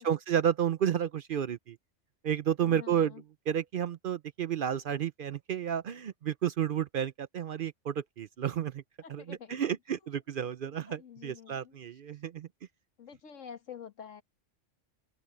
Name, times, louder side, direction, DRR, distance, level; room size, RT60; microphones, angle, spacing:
voice 1, 0.0-1.8 2.2-3.1 3.5-8.8 9.1-12.5, right 9 dB, 55° right, 0.6 m, -31 dB
voice 2, 2.6-3.2 9.0-9.6 10.6-11.8 13.0-14.2, left 8 dB, 90° left, 1.8 m, -48 dB
open air
omnidirectional pair, 1.3 m